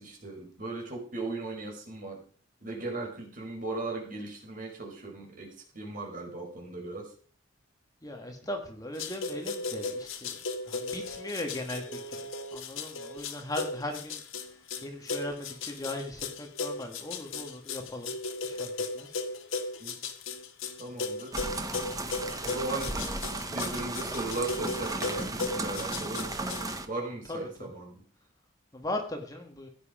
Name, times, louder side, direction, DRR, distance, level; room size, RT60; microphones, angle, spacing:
voice 1, 0.0-2.2 2.6-7.1 19.8-20.0 20.8-21.3 22.4-23.0 23.5-26.3 26.9-28.0, right 2 dB, 45° right, 1 dB, 5.2 m, -37 dB
voice 2, 8.0-10.4 10.7-14.2 14.8-18.1 18.4-18.7 18.9-19.1 22.8-23.1 27.3-27.7 28.7-29.7, left 1 dB, 20° left, 3 dB, 2.0 m, -38 dB
sound 1, 9.0-26.7, left 3 dB, 90° left, 1.9 m, -36 dB
sound 2, 21.3-26.9, right 2 dB, 20° right, 1.2 m, -35 dB
16.0 x 9.9 x 5.1 m, 0.43 s
head